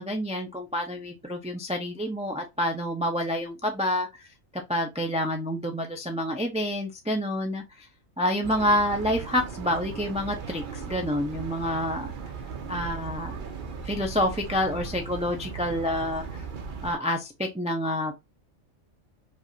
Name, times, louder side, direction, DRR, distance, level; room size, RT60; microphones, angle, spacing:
voice 1, 0.0-4.3 4.7-7.6 8.2-12.1 12.7-13.4 13.8-16.4 16.8-18.1, left 1 dB, 5° right, 0.6 m, -28 dB
sound 1, 8.4-16.9, right 6 dB, 45° right, 0.8 m, -37 dB
5.3 x 2.7 x 2.6 m
omnidirectional pair, 1.4 m